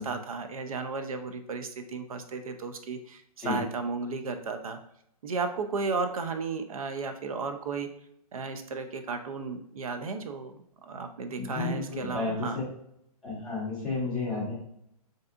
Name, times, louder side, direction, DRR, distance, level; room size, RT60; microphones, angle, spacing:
voice 1, 0.0-4.8 5.2-7.9 8.3-12.6, right 4 dB, 65° right, 7 dB, 0.4 m, -34 dB
voice 2, 11.4-12.6 13.2-14.5, left 3 dB, 5° left, -9 dB, 0.5 m, -32 dB
3.4 x 2.6 x 2.4 m, 0.74 s
hypercardioid pair, 170°, 20 cm